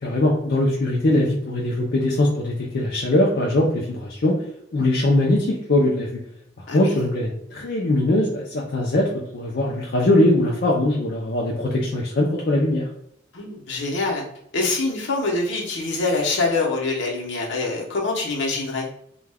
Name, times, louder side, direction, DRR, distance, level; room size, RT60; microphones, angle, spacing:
voice 1, 0.0-4.4 4.7-6.2 6.7-12.9, left 1 dB, 55° left, -3 dB, 0.4 m, -21 dB
voice 2, 13.3-14.2 14.5-18.9, left 3 dB, 75° left, -1 dB, 0.8 m, -25 dB
2.3 x 2.2 x 3.3 m, 0.72 s
head